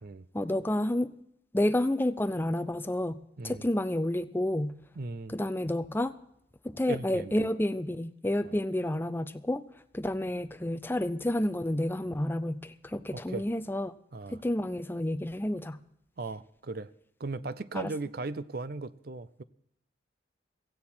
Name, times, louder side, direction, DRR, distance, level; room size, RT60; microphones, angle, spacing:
voice 1, 0.3-1.1 1.5-4.7 5.3-6.1 6.6-9.7 9.9-13.9 14.3-15.8 17.7-17.9, left 1 dB, 10° left, 11 dB, 0.5 m, -30 dB
voice 2, 5.0-5.3 6.9-7.5 13.1-13.4 14.1-14.4 16.2-16.9 17.2-19.4, right 3 dB, 55° right, 15 dB, 0.6 m, -37 dB
17.0 x 15.5 x 4.4 m, 0.73 s
head